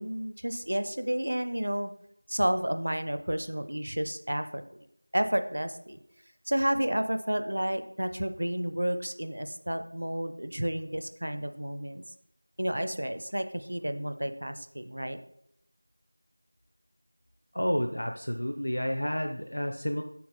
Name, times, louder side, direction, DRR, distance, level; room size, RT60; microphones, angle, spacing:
voice 1, 0.0-1.9 2.3-4.6 5.1-6.0 6.5-12.0 12.6-15.2, equal, 30° right, 9 dB, 0.4 m, -31 dB
voice 2, 17.5-20.0, equal, 50° left, 5 dB, 0.5 m, -30 dB
8.5 x 5.6 x 4.1 m, 0.76 s
figure-of-eight pair, 180°, 0 cm